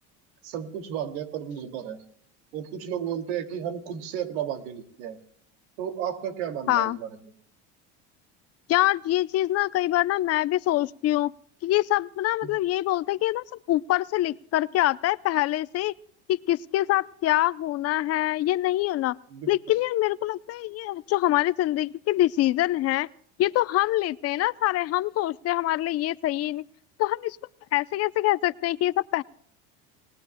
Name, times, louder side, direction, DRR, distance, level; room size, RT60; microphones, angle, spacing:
voice 1, 0.4-2.0 2.5-5.2 5.8-7.3 12.4-12.6 19.3-19.5, right 9 dB, 80° right, 6 dB, 2.4 m, -33 dB
voice 2, 6.7-7.0 8.7-11.3 11.6-15.9 16.3-19.1 19.5-23.1 23.4-26.6 27.0-27.4 27.7-29.2, left 15 dB, 45° left, 18 dB, 0.6 m, -25 dB
29.0 x 19.0 x 2.2 m, 0.62 s
supercardioid pair, 110°, 33 cm